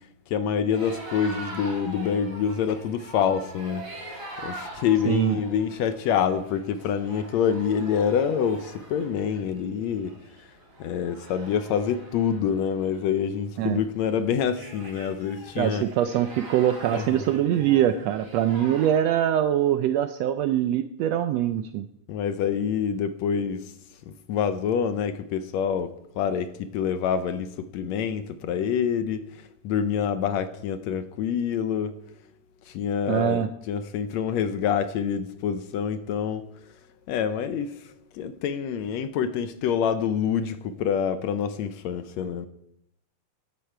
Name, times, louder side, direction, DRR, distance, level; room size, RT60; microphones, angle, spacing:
voice 1, 0.3-3.9 4.4-10.1 10.8-15.9 16.9-17.2 22.1-23.7 24.1-31.9 32.7-36.5 37.1-37.8 38.1-42.5, left 7 dB, 75° left, 1.8 m, -26 dB
sound 1, 0.7-19.0, right 1 dB, 25° right, 2.7 m, -43 dB
voice 2, 5.0-5.4 13.6-13.8 15.6-21.9 33.1-33.5, right 11 dB, 80° right, 1.5 m, -23 dB
14.0 x 11.5 x 4.6 m
omnidirectional pair, 3.5 m